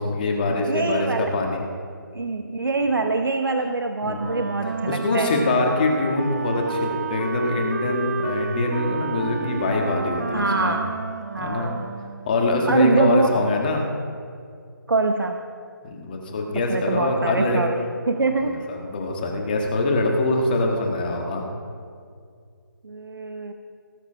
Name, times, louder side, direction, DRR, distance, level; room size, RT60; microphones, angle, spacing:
voice 1, 0.0-1.6 4.0-4.6 4.9-10.7 11.3-11.7 12.2-13.9 15.8-17.6 18.4-21.5, left 2 dB, 25° left, 1 dB, 1.5 m, -24 dB
voice 2, 0.7-1.3 2.1-5.4 10.3-11.0 11.3-11.9 12.7-13.4 14.9-15.4 16.7-18.6 22.8-23.5, right 3 dB, 80° right, 6 dB, 0.9 m, -24 dB
Wind instrument woodwind instrument, 4.1-12.4, right 4 dB, 45° right, 0.9 m, -30 dB
18.5 x 6.8 x 5.7 m, 2.3 s
figure-of-eight pair, 160°, 11 cm